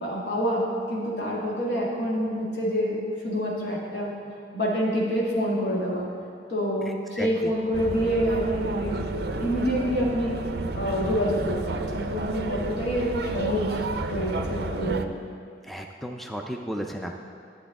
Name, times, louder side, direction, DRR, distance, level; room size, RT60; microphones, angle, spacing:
voice 1, 0.0-4.1 4.5-6.0 6.5-10.4 10.7-13.8 14.1-15.1, equal, 70° left, -4 dB, 1.7 m, -27 dB
voice 2, 7.1-7.5 15.7-17.1, equal, ahead, 2 dB, 0.4 m, -33 dB
sound 1, 7.7-15.1, right 3 dB, 60° right, 0.4 m, -31 dB
11.5 x 7.8 x 3.6 m, 2.3 s
head